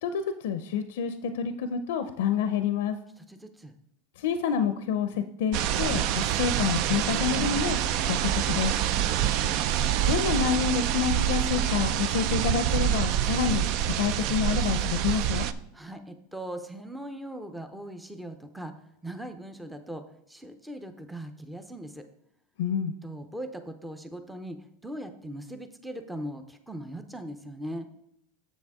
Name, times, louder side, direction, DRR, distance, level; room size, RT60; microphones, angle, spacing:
voice 1, 0.0-3.0 4.2-7.8 8.0-8.7 10.1-13.6 14.0-15.5 22.6-22.9, left 7 dB, 85° left, 9 dB, 0.5 m, -28 dB
voice 2, 3.2-3.8 8.9-9.6 15.7-18.8 19.0-22.1 23.0-27.9, right 1 dB, 5° right, 7 dB, 0.6 m, -40 dB
sound 1, 5.5-15.5, right 10 dB, 55° right, 0.4 m, -26 dB
sound 2, 7.2-12.9, right 9 dB, 75° right, 0.8 m, -41 dB
7.3 x 7.1 x 3.6 m, 0.77 s
supercardioid pair, 135°, 0 cm